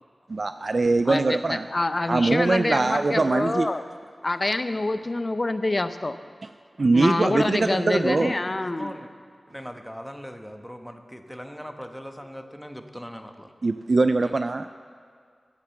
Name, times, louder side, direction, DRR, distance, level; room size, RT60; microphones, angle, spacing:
voice 1, 0.3-1.7 2.1-3.7 6.8-8.3 13.6-14.7, right 3 dB, 60° right, 10 dB, 0.3 m, -22 dB
voice 2, 1.1-3.8 4.2-6.2 6.9-8.9, left 2 dB, 40° left, 11 dB, 0.6 m, -26 dB
voice 3, 8.8-9.1 9.5-13.5 14.2-14.3, equal, ahead, 6 dB, 1.0 m, -40 dB
10.5 x 8.4 x 7.6 m, 2.1 s
cardioid pair, 50°, 0 cm